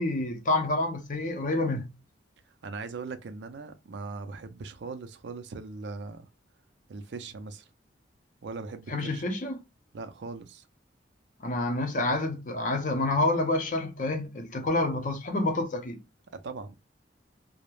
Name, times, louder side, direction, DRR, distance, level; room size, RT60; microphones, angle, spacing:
voice 1, 0.0-1.9 8.9-9.6 11.4-16.0, left 2 dB, 45° left, 0.6 m, -28 dB
voice 2, 2.6-6.3 6.9-7.7 8.4-9.3 9.9-10.7 16.3-16.8, right 4 dB, 70° right, 0.4 m, -40 dB
2.3 x 2.0 x 3.0 m
head